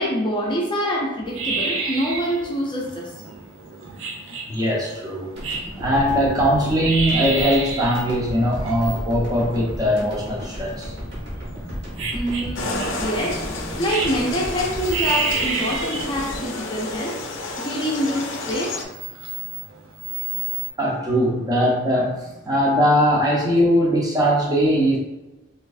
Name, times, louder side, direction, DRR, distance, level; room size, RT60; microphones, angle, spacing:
voice 1, 0.0-3.1 12.1-13.4 13.7-17.2 17.6-18.8, equal, 25° left, -2 dB, 0.5 m, -25 dB
sound 1, 1.3-20.7, right 4 dB, 85° right, 0.6 m, -30 dB
voice 2, 4.4-5.3 5.8-10.9 20.8-25.0, equal, 20° right, -3 dB, 0.6 m, -20 dB
sound 2, 5.4-17.6, equal, 60° right, 1.2 m, -34 dB
sound 3, 12.6-18.8, left 2 dB, 65° left, 0.5 m, -31 dB
4.3 x 2.5 x 2.5 m, 1.0 s
head